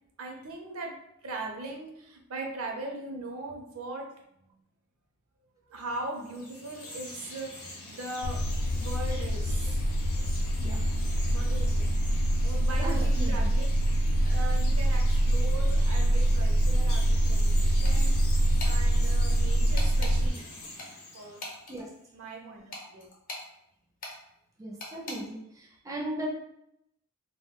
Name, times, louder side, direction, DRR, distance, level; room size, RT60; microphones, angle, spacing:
voice 1, 0.2-0.9 1.2-4.1 5.7-8.4 8.7-9.8 10.1-10.3 11.3-12.0 12.4-13.6 14.2-18.1 18.6-20.4 21.1-21.4 22.1-23.1, right 2 dB, 70° right, 1 dB, 0.6 m, -39 dB
Chirp tweet, 6.2-21.8, left 2 dB, 75° left, 0.7 m, -44 dB
sound 1, 8.2-20.3, equal, 90° left, 0.3 m, -25 dB
voice 2, 12.8-13.4 21.7-21.9 24.6-26.3, right 2 dB, 15° right, -3 dB, 0.4 m, -37 dB
sound 2, 17.8-18.2 18.6-18.8 19.8-20.2 20.8-21.8 22.7-23.5 24.0-24.2 24.8-25.2, left 2 dB, 40° left, 0.7 m, -40 dB
2.2 x 2.1 x 3.6 m, 0.78 s
head